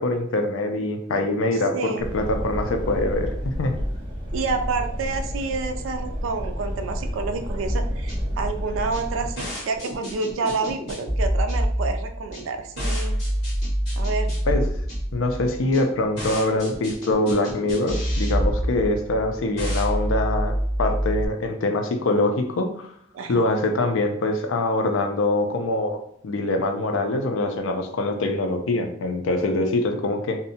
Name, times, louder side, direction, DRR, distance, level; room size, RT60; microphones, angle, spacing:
voice 1, 0.0-3.8 14.5-14.6 15.1-20.5 20.8-22.9 23.3-30.4, left 2 dB, 75° left, 5 dB, 0.4 m, -24 dB
voice 2, 1.7-2.1 4.3-13.1 14.0-14.3 23.1-23.5, right 4 dB, 80° right, 6 dB, 0.3 m, -29 dB
sound 1, 2.0-9.3, equal, 25° right, 0.5 m, -30 dB
sound 2, 7.7-21.3, equal, 55° left, 1.1 m, -27 dB
2.6 x 2.1 x 2.7 m, 0.66 s
head